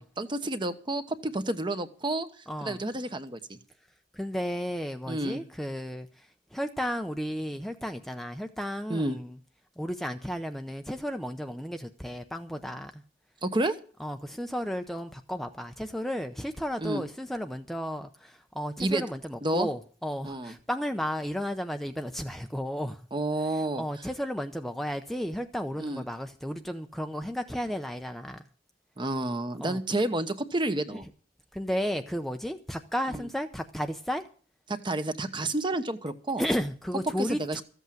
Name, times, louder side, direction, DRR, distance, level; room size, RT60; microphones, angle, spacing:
voice 1, 0.0-2.3 2.6-3.6 5.1-5.4 8.9-9.2 13.4-13.8 16.8-17.0 18.8-19.0 19.4-19.7 20.2-20.5 23.1-23.8 25.8-26.0 29.0-31.0 33.1-33.3 34.7-36.4 37.2-37.6, right 1 dB, 25° right, 10 dB, 1.1 m, -30 dB
voice 2, 2.5-2.8 4.1-9.4 9.8-13.0 14.0-23.1 23.4-28.4 29.6-29.8 30.9-31.0 31.5-34.3 36.4-37.6, equal, ahead, 6 dB, 0.6 m, -33 dB
14.5 x 8.1 x 7.6 m, 0.42 s
head